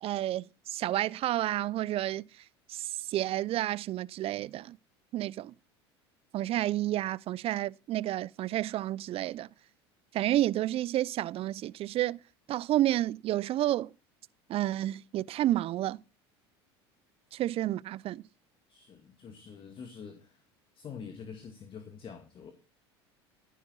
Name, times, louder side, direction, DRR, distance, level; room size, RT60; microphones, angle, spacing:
voice 1, 0.0-2.4 2.7-4.8 5.1-5.5 6.3-9.5 10.1-12.2 12.5-13.9 14.5-16.0 17.3-18.2, right 14 dB, 45° right, 0.5 m, -30 dB
voice 2, 18.7-20.4 20.7-22.5, left 6 dB, 40° left, 2.1 m, -46 dB
14.0 x 9.2 x 4.1 m
hypercardioid pair, 80°, 14 cm